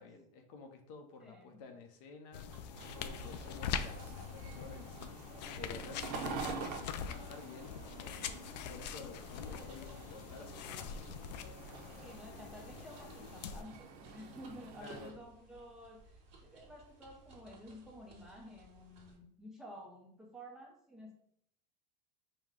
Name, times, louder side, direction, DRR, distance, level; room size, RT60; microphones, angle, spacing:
voice 1, 0.0-5.2 5.6-11.1 14.8-15.2, left 4 dB, 60° left, 5 dB, 0.7 m, -52 dB
voice 2, 1.2-1.6 9.6-9.7 11.9-21.1, equal, ahead, -2 dB, 0.7 m, -52 dB
sound 1, 2.3-13.6, left 7 dB, 85° left, 0.4 m, -43 dB
sound 2, 2.5-19.2, right 3 dB, 30° right, 1.3 m, -60 dB
sound 3, 2.7-15.1, right 5 dB, 60° right, 0.7 m, -48 dB
4.9 x 2.2 x 3.6 m, 0.67 s
supercardioid pair, 140°, 21 cm